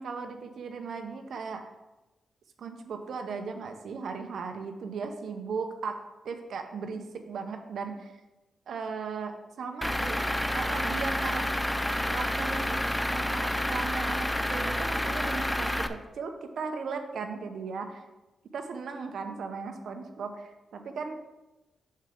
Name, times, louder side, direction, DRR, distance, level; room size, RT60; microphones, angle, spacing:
voice 1, 0.0-1.6 2.6-6.0 6.2-8.2 8.7-10.2 10.5-11.5 12.1-12.8 13.1-18.0 18.5-21.2, right 5 dB, 75° right, 5 dB, 0.8 m, -37 dB
Truck / Idling, 9.8-15.9, left 1 dB, 5° left, 0.4 m, -29 dB
6.6 x 6.6 x 3.7 m, 1.0 s
cardioid pair, 90°, 0 cm